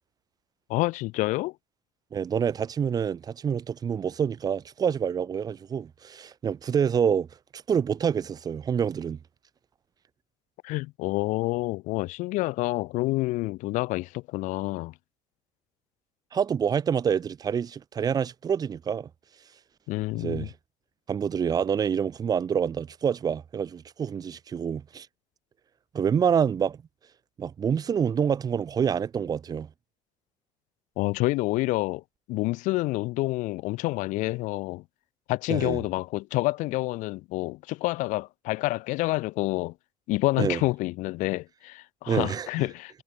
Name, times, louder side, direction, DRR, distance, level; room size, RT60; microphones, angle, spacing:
voice 1, 0.7-1.5 10.6-14.9 19.9-20.5 31.0-32.0 32.3-34.8 35.3-39.7 40.1-43.0, left 20 dB, 70° left, 0.8 m, -28 dB
voice 2, 2.1-7.3 7.5-9.2 16.3-19.1 20.1-20.5 21.1-25.1 25.9-26.8 27.4-29.7 35.5-35.8 40.4-40.6 42.1-42.7, right 7 dB, 30° right, 1.7 m, -27 dB
cardioid pair, 155°, 14 cm